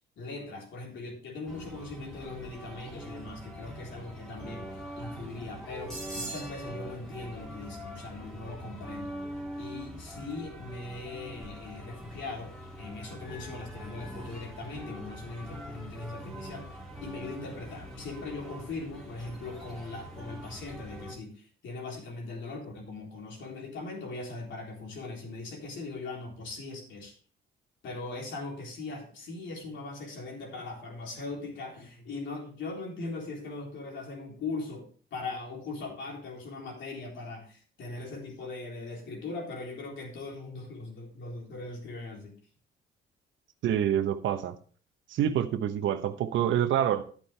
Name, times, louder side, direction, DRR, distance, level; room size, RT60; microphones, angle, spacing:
voice 1, 0.2-9.1 9.6-27.1 27.8-42.3, left 3 dB, 70° left, -1 dB, 3.7 m, -40 dB
sound 1, 1.5-21.1, equal, 5° left, 2.7 m, -43 dB
voice 2, 43.6-44.5 45.1-47.0, right 10 dB, 75° right, 10 dB, 0.9 m, -27 dB
10.5 x 8.9 x 3.3 m, 0.42 s
cardioid pair, 90°, 20 cm